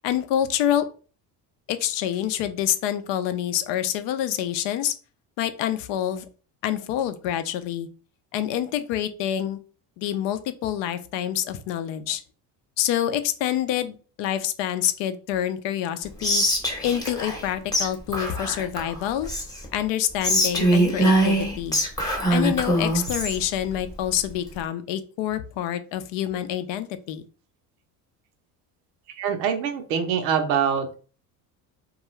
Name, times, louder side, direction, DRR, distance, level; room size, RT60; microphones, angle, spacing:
voice 1, 0.0-0.9 1.7-4.9 5.4-6.3 6.6-7.9 8.3-9.6 10.0-12.2 12.8-16.4 16.8-19.3 19.7-21.8 22.3-27.2, left 11 dB, 65° left, 11 dB, 0.5 m, -27 dB
Whispering, 16.2-17.5 17.7-17.9 18.1-19.7 20.2-23.4, right 1 dB, 10° left, 0.8 m, -23 dB
voice 2, 29.2-31.0, right 7 dB, 85° right, 6 dB, 0.7 m, -24 dB
2.3 x 2.3 x 3.0 m, 0.37 s
supercardioid pair, 80°, 49 cm